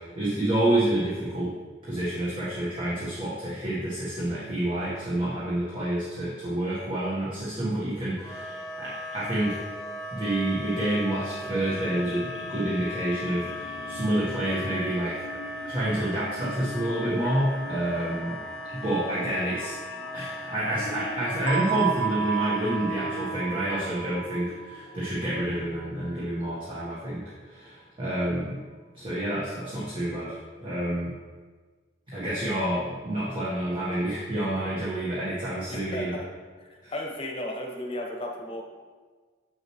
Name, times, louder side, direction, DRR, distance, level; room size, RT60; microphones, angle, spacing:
voice 1, 0.0-1.5 1.8-9.6 10.1-15.2 15.7-18.4 18.7-19.8 20.1-28.6 28.9-31.1 32.1-36.2 36.8-36.9, right 1 dB, 30° right, -8 dB, 1.3 m, -28 dB
Wind instrument woodwind instrument, 8.2-23.5, left 1 dB, ahead, 1.2 m, -38 dB
sound 1, 10.7-26.6, left 1 dB, 75° left, 0.5 m, -42 dB
sound 2, 21.5-26.1, right 9 dB, 70° right, 0.5 m, -32 dB
voice 2, 35.7-36.3 36.6-38.7, left 1 dB, 35° left, 1 dB, 1.0 m, -35 dB
7.6 x 6.3 x 3.1 m, 1.4 s
head